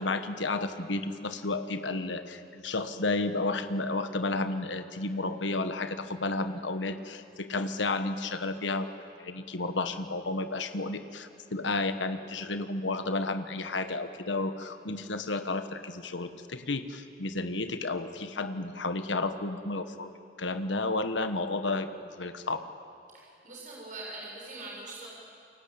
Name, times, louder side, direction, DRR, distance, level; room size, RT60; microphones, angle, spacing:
voice 1, 0.0-8.9 9.2-22.7, left 2 dB, 80° left, 9 dB, 1.4 m, -32 dB
voice 2, 23.1-25.1, right 2 dB, 45° right, -3 dB, 6.7 m, -42 dB
29.0 x 23.0 x 8.8 m, 2.6 s
head